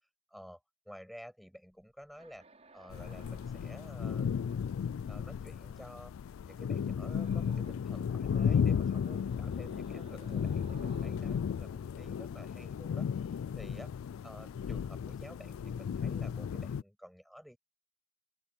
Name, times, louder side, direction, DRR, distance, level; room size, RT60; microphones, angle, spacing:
voice 1, 0.3-4.3 5.1-6.1 6.4-13.9 14.2-17.6, equal, ahead, 6.9 m, -52 dB
sound 1, 1.8-6.0 7.1-7.8 8.1-13.0, right 2 dB, 35° right, 6.3 m, -57 dB
sound 2, 2.9-16.8, left 7 dB, 90° left, 0.3 m, -34 dB
open air
head